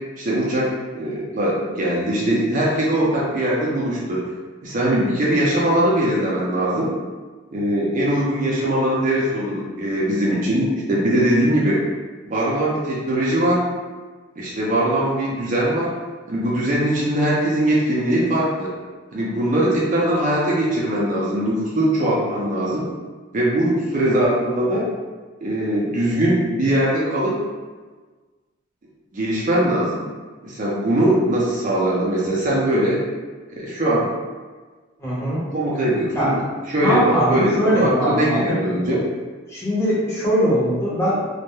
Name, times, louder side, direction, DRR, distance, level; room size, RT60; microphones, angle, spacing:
voice 1, 0.2-0.7 0.9-4.2 4.6-6.9 7.5-11.8 12.3-13.6 14.4-15.9 16.3-18.7 19.1-22.9 23.3-24.9 25.4-27.4 29.1-30.1 30.4-33.0 33.5-34.1 35.5-36.4 36.7-37.0 37.3-39.0, right 1 dB, 40° right, -6 dB, 0.4 m, -21 dB
voice 2, 35.0-35.4 36.1-36.3 36.8-38.6 39.5-41.3, equal, 15° left, -9 dB, 0.7 m, -21 dB
2.2 x 2.0 x 2.9 m, 1.4 s
head